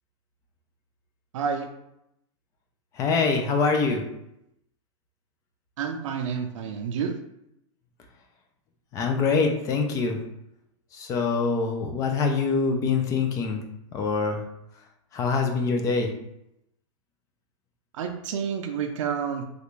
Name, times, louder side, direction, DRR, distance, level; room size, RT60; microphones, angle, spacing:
voice 1, 1.3-1.7 5.8-7.2 17.9-19.5, right 6 dB, 70° right, 4 dB, 0.5 m, -29 dB
voice 2, 3.0-4.0 8.9-10.2 11.0-13.6 13.9-14.4 15.1-16.1, left 4 dB, 20° left, 3 dB, 0.4 m, -24 dB
3.2 x 2.5 x 3.1 m, 0.82 s
supercardioid pair, 155°, 17 cm